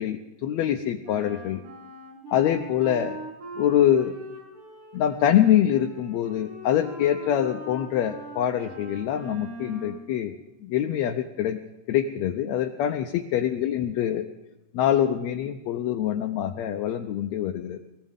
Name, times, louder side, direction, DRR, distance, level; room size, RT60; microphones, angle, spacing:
voice 1, 0.0-1.6 2.3-3.2 3.6-4.1 4.9-10.4 10.6-11.6 11.9-14.3 14.7-17.8, left 10 dB, 75° left, 5 dB, 1.7 m, -24 dB
Wind instrument woodwind instrument, 1.0-10.0, right 1 dB, 75° right, 6.7 m, -41 dB
23.5 x 16.0 x 3.7 m, 0.98 s
omnidirectional pair, 3.7 m